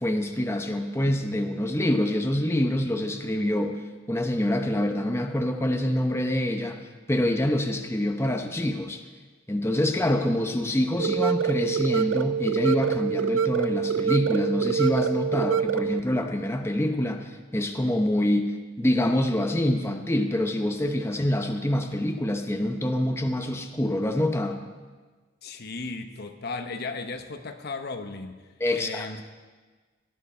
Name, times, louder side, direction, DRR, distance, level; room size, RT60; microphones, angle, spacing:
voice 1, 0.0-3.8 4.1-6.8 7.1-9.0 9.5-24.6 28.6-29.1, left 1 dB, 15° left, 4 dB, 0.8 m, -26 dB
sound 1, 11.0-16.0, right 7 dB, 85° right, 0.4 m, -25 dB
voice 2, 25.4-28.4 28.7-29.2, left 3 dB, 55° left, 7 dB, 1.0 m, -35 dB
18.0 x 13.5 x 4.4 m, 1.4 s
head